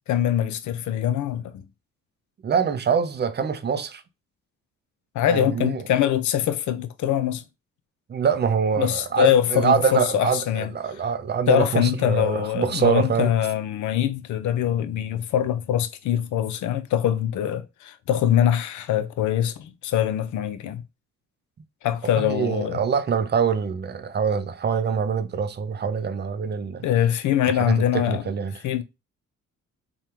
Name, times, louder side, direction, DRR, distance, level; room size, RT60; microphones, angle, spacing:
voice 1, 0.1-1.6 5.1-7.4 8.8-10.7 11.5-20.8 21.8-22.8 26.8-28.2 28.6-28.8, left 10 dB, 75° left, 0.7 m, -23 dB
voice 2, 2.4-4.0 5.3-5.9 8.1-13.3 22.2-26.8 27.4-28.5, right 6 dB, 35° right, 0.6 m, -24 dB
3.5 x 2.4 x 4.3 m
cardioid pair, 90°, 30 cm